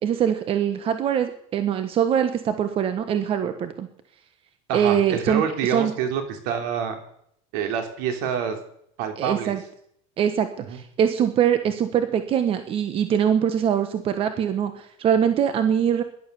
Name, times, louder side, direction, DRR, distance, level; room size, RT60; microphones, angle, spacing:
voice 1, 0.0-3.9 4.7-5.9 9.2-9.6 10.2-16.0, right 8 dB, 35° right, 9 dB, 1.3 m, -23 dB
voice 2, 4.7-7.0 7.5-8.6 9.0-9.6 10.7-10.8, right 7 dB, 70° right, 6 dB, 3.5 m, -27 dB
17.0 x 11.5 x 7.0 m, 0.69 s
supercardioid pair, 135°, 16 cm